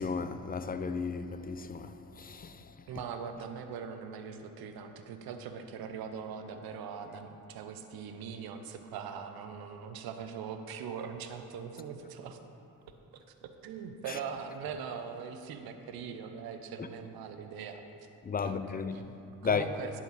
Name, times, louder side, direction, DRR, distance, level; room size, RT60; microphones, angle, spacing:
voice 1, 0.0-2.6 16.8-16.9 18.3-19.1 19.4-19.6, left 5 dB, 25° left, 0.4 m, -34 dB
voice 2, 2.9-12.4 13.1-17.8 18.4-18.6 18.9-20.0, right 6 dB, 70° right, 0.7 m, -41 dB
10.5 x 4.5 x 4.0 m
hypercardioid pair, 45°, 38 cm